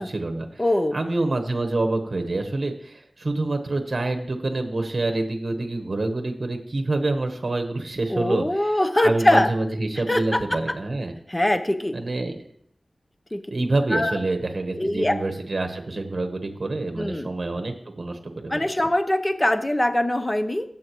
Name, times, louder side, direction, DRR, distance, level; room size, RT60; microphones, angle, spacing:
voice 1, 0.1-0.6 0.9-8.8 9.0-11.1 11.9-12.5 13.5-18.7, right 2 dB, 55° right, 5 dB, 1.1 m, -27 dB
voice 2, 0.6-1.0 8.1-9.5 10.1-10.4 11.3-12.0 13.3-13.4 13.9-14.2 14.8-15.2 17.0-17.3 18.5-20.6, left 1 dB, 20° left, 9 dB, 0.8 m, -22 dB
15.0 x 7.3 x 3.1 m, 0.70 s
wide cardioid pair, 70°, 0 cm